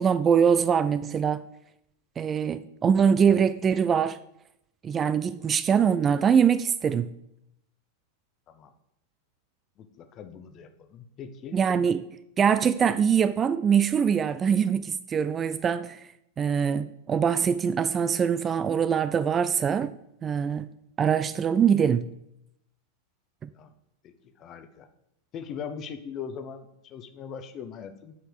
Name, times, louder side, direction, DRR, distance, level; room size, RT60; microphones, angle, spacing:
voice 1, 0.0-1.4 2.2-4.2 4.8-7.1 11.5-12.0 12.4-16.0 16.4-19.9 20.2-20.7 21.0-22.1, right 7 dB, 25° right, 14 dB, 0.4 m, -23 dB
voice 2, 9.8-11.6 23.5-23.7 24.0-24.9 25.3-28.2, left 7 dB, 30° left, 9 dB, 0.9 m, -40 dB
8.4 x 4.5 x 7.2 m, 0.79 s
figure-of-eight pair, 90°, 0 cm